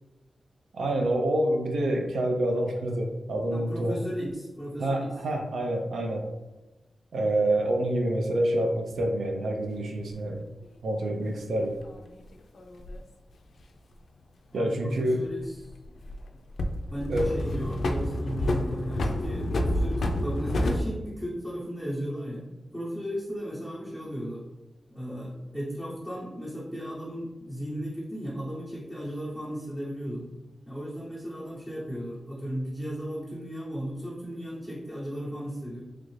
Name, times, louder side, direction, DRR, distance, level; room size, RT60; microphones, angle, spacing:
voice 1, 0.7-3.9 4.8-6.3 7.1-10.4 10.8-11.8 14.5-15.2 17.1-17.3, right 1 dB, 90° right, 2 dB, 0.5 m, -27 dB
voice 2, 3.5-5.1 14.5-15.7 16.9-22.5 22.7-24.4 24.9-30.3 30.7-35.8, equal, ahead, -9 dB, 0.7 m, -35 dB
sound 1, 10.1-10.2 11.7-13.0 15.3-16.2 16.6-20.8, left 1 dB, 75° left, 0.3 m, -29 dB
3.1 x 2.5 x 3.1 m, 1.1 s
wide cardioid pair, 90°, 0 cm